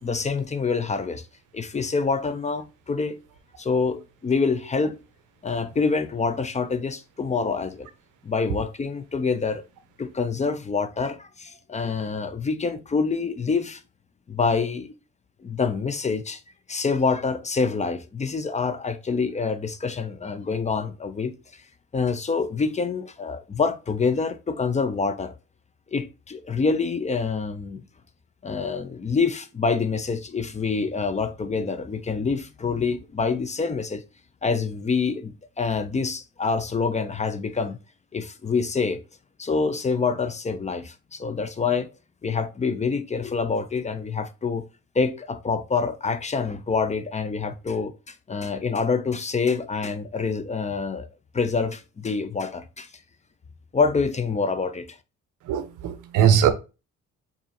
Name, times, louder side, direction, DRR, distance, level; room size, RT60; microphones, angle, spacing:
voice 1, 0.0-1.2 1.5-3.2 3.6-5.0 5.4-7.9 8.2-9.6 10.0-13.8 14.3-14.9 15.4-16.4 16.7-21.3 21.9-25.3 25.9-27.8 28.4-34.0 34.4-37.8 38.1-39.0 39.4-41.9 42.2-44.7 44.9-51.1 51.3-52.9 53.7-55.0, left 4 dB, 25° left, 0.4 m, -26 dB
voice 2, 55.5-56.5, right 9 dB, 85° right, 0.7 m, -20 dB
4.7 x 2.6 x 2.7 m
cardioid pair, 90°, 30 cm